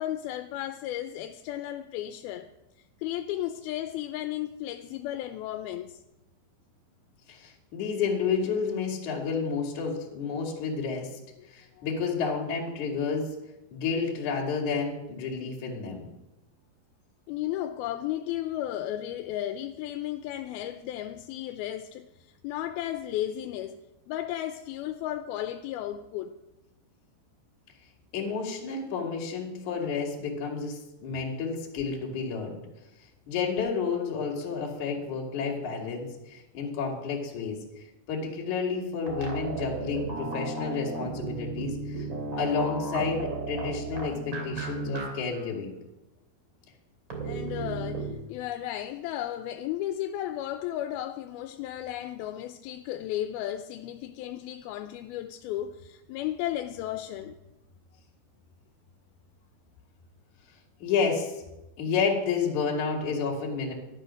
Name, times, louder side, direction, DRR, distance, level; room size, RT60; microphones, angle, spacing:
voice 1, 0.0-2.5 3.0-6.0 11.8-11.9 17.3-23.8 24.1-26.3 47.2-57.3, left 12 dB, 90° left, 2.6 m, -34 dB
voice 2, 7.3-11.2 11.5-13.4 13.7-16.1 28.1-32.6 33.3-37.6 38.1-42.1 42.4-45.7 60.8-61.4 61.8-63.7, left 5 dB, 55° left, 3.8 m, -30 dB
sound 1, 39.1-45.1 45.3-45.4 47.1-48.1, right 3 dB, 35° right, 3.2 m, -34 dB
13.0 x 12.0 x 6.4 m
omnidirectional pair, 4.3 m